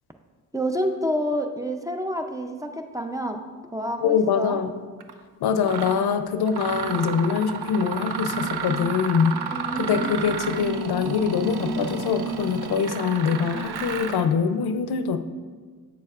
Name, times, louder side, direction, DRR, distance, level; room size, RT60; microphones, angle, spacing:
voice 1, 0.5-3.4 3.7-4.6 9.5-10.2, equal, 10° right, 4 dB, 0.5 m, -28 dB
voice 2, 4.0-4.8 5.4-15.2, left 6 dB, 75° left, 10 dB, 0.5 m, -24 dB
Mechanisms, 5.0-5.1 5.6-6.0 6.5-14.3, right 6 dB, 80° right, 0.6 m, -31 dB
8.1 x 6.6 x 2.4 m, 1.5 s
cardioid pair, 65°, 39 cm